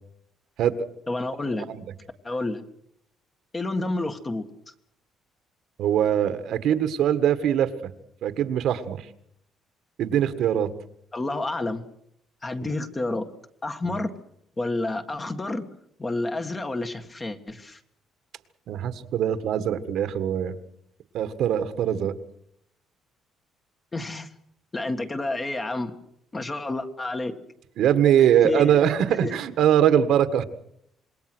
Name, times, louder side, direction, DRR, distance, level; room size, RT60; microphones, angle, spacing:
voice 1, 1.1-1.7 2.2-2.6 3.5-4.7 11.1-11.8 12.4-13.3 13.6-14.1 14.6-15.7 16.0-17.8 23.9-24.3 24.7-25.9 26.3-27.3 28.2-28.8 29.1-29.3, left 2 dB, 15° left, 7 dB, 1.8 m, -30 dB
voice 2, 5.8-7.9 8.2-9.1 10.0-10.7 12.6-12.7 13.8-14.0 18.7-20.5 21.1-22.1 27.8-30.4, right 9 dB, 65° right, 11 dB, 1.7 m, -22 dB
26.5 x 21.5 x 6.3 m, 0.74 s
cardioid pair, 155°, 0 cm